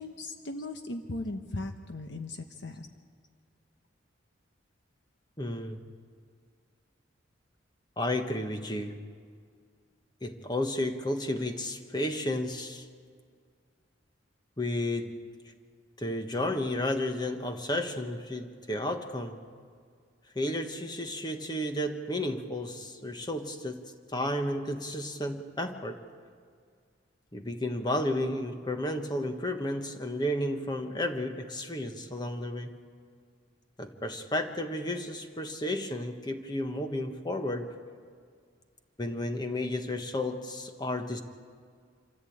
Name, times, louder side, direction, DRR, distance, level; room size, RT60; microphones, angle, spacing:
voice 1, 0.0-2.9, left 2 dB, 65° left, 5 dB, 1.1 m, -38 dB
voice 2, 5.4-5.8 8.0-9.0 10.2-12.9 14.6-15.2 16.0-19.4 20.3-23.8 24.1-26.0 27.3-32.7 33.8-37.7 39.0-41.2, left 1 dB, 20° left, 6 dB, 1.3 m, -32 dB
26.5 x 14.5 x 8.7 m, 2.1 s
head